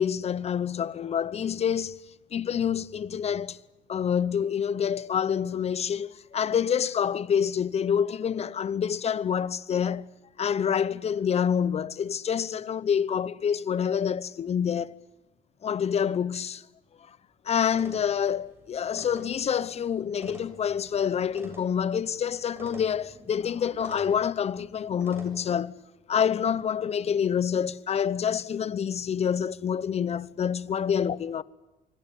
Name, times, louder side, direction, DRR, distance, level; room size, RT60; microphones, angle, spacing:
voice 1, 0.0-2.0 2.3-3.6 3.9-10.1 10.4-14.9 15.6-16.6 17.4-25.8 26.1-31.4, left 8 dB, 40° left, 0.9 m, -27 dB
sound 1, 17.7-25.3, right 1 dB, 15° right, 7.2 m, -48 dB
25.0 x 25.0 x 8.4 m
cardioid pair, 110°, 17 cm